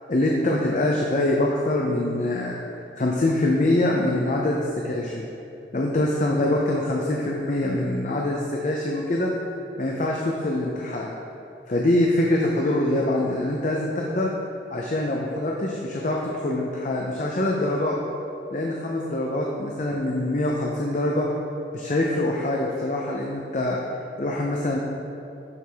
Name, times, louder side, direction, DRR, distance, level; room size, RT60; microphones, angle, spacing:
voice 1, 0.1-2.6 3.0-5.2 5.7-9.3 9.8-11.1 11.7-14.3 14.7-18.0 18.5-21.3 21.7-23.8 24.2-24.8, left 1 dB, 45° left, -2 dB, 0.6 m, -24 dB
11.0 x 4.6 x 3.5 m, 2.8 s
head